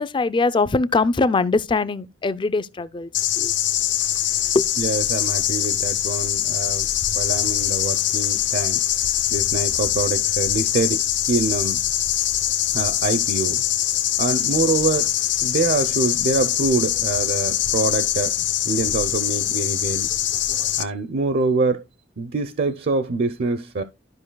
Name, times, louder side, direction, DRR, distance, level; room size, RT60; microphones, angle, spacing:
voice 1, 0.0-3.1 3.4-3.5 4.5-4.7, left 3 dB, 25° left, 0.4 m, -21 dB
sound 1, 3.1-20.8, left 12 dB, 70° left, 0.7 m, -23 dB
voice 2, 4.8-6.9 7.1-11.8 12.7-13.6 14.2-15.1 15.4-20.1 20.8-21.8 22.2-23.8, right 3 dB, 55° right, 0.6 m, -25 dB
12.5 x 5.3 x 2.2 m
head